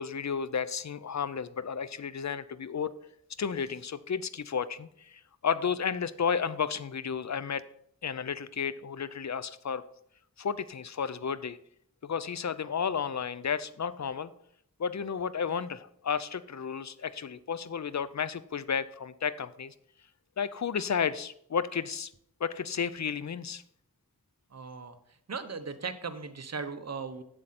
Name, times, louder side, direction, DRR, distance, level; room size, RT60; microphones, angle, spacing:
voice 1, 0.0-2.9 3.4-7.6 8.0-9.8 10.4-11.6 12.0-14.3 14.8-19.7 20.4-22.1 22.4-23.6, left 6 dB, 50° left, 15 dB, 0.5 m, -32 dB
voice 2, 24.5-24.9 25.3-27.2, right 5 dB, 45° right, 9 dB, 0.9 m, -37 dB
7.7 x 7.5 x 4.2 m, 0.70 s
wide cardioid pair, 45°, 35 cm